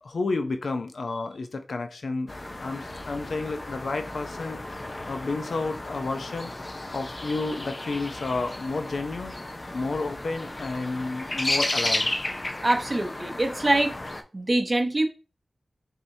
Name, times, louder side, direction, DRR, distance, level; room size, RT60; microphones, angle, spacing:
voice 1, 0.0-4.6 5.0-6.5 6.9-9.3 9.7-12.1, left 3 dB, 85° left, 0.5 m, -31 dB
sound 1, 2.3-14.2, left 2 dB, 45° left, 0.6 m, -33 dB
voice 2, 12.6-14.0 14.3-15.1, right 2 dB, 40° right, 0.8 m, -24 dB
5.5 x 2.9 x 2.7 m
cardioid pair, 50°, 0 cm